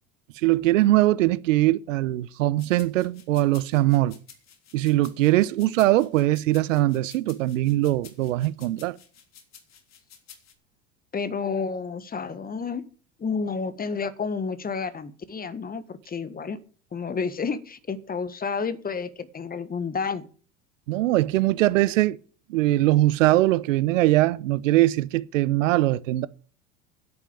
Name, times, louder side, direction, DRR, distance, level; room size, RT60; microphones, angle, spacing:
voice 1, 0.4-4.2 4.7-9.0 20.9-22.2 22.5-26.3, right 16 dB, 70° right, 0.8 m, -21 dB
sound 1, 2.6-10.5, left 8 dB, 40° left, 3.4 m, -51 dB
voice 2, 11.1-12.8 13.2-16.6 16.9-20.3, left 5 dB, 20° left, 1.5 m, -30 dB
10.5 x 8.7 x 8.5 m
hypercardioid pair, 80°, 39 cm